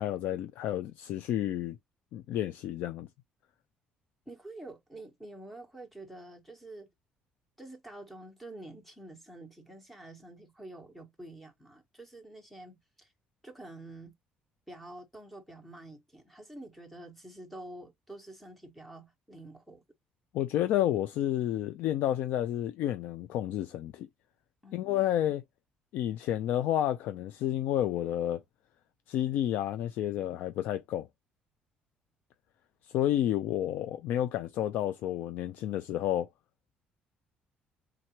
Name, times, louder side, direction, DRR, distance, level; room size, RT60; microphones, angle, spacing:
voice 1, 0.0-1.8 2.1-3.1 20.3-24.1 24.7-25.4 25.9-28.4 29.1-31.1 32.9-36.3, left 12 dB, 70° left, 0.4 m, -30 dB
voice 2, 4.3-6.9 7.6-13.1 13.4-14.1 14.7-19.8 24.6-25.2, right 2 dB, 5° left, 1.1 m, -48 dB
4.4 x 3.8 x 3.0 m
cardioid pair, 175°, 3 cm